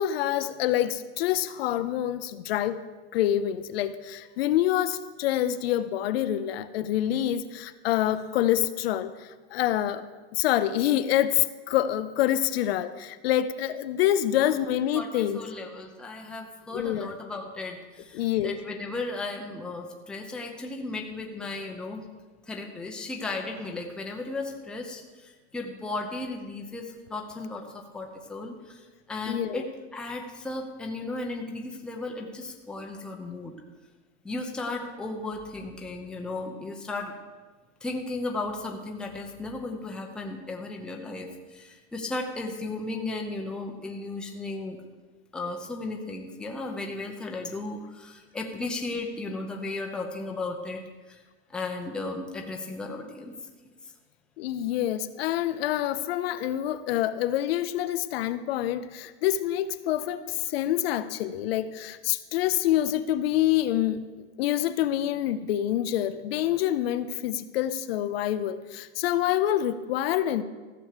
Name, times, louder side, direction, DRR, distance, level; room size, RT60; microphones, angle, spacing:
voice 1, 0.0-2.8 3.1-10.0 10.3-15.4 16.7-17.1 18.1-18.6 29.3-29.6 54.4-64.0 64.4-70.4, left 12 dB, 60° left, 12 dB, 0.7 m, -26 dB
voice 2, 14.9-22.1 22.5-28.8 29.1-29.7 29.9-33.5 34.2-37.2 37.8-44.8 45.3-50.8 51.1-51.2 51.5-53.3, left 2 dB, 5° left, 1 dB, 0.6 m, -35 dB
14.0 x 6.0 x 6.7 m, 1.3 s
supercardioid pair, 165°, 34 cm